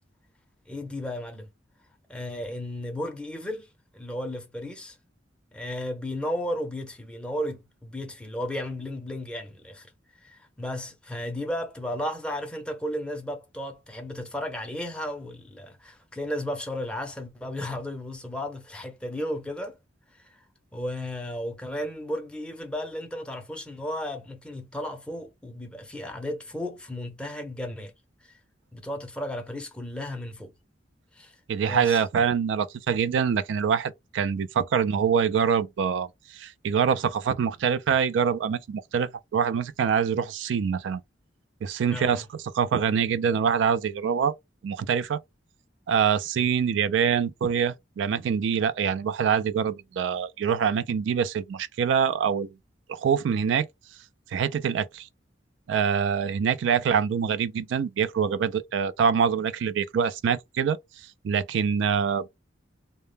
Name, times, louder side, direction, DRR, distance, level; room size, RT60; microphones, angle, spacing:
voice 1, 0.7-1.5 2.1-3.7 3.9-5.0 5.5-9.9 10.2-19.8 20.7-27.9 28.2-28.3 28.7-30.5 31.1-31.3 31.6-32.0 41.9-42.2 46.4-46.5 56.7-56.8, left 1 dB, 5° left, 0.5 m, -34 dB
voice 2, 31.5-41.0 41.6-42.2 42.5-44.3 44.6-45.2 45.9-52.5 52.9-53.7 54.3-55.1 55.7-60.8 61.2-62.3, right 7 dB, 75° right, 0.3 m, -25 dB
2.0 x 2.0 x 3.2 m
head